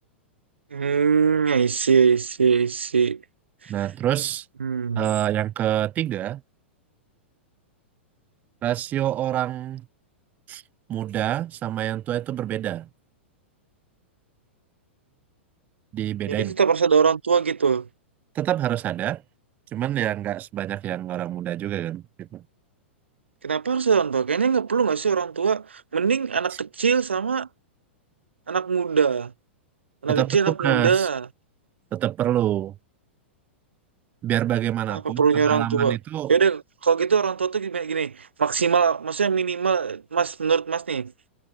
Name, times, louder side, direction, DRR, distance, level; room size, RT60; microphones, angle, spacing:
voice 1, 0.7-3.2 3.6-3.7 4.6-5.1 16.3-17.9 23.4-27.5 28.5-29.3 30.0-31.3 34.9-36.0 36.3-41.1, right 6 dB, 70° right, 0.7 m, -22 dB
voice 2, 3.7-4.5 5.0-6.4 8.6-9.9 10.5-10.6 10.9-12.9 15.9-16.5 18.3-19.2 19.7-22.4 30.1-31.1 31.9-32.7 34.2-36.3, right 12 dB, 25° right, 0.6 m, -26 dB
figure-of-eight pair, 100°, 6 cm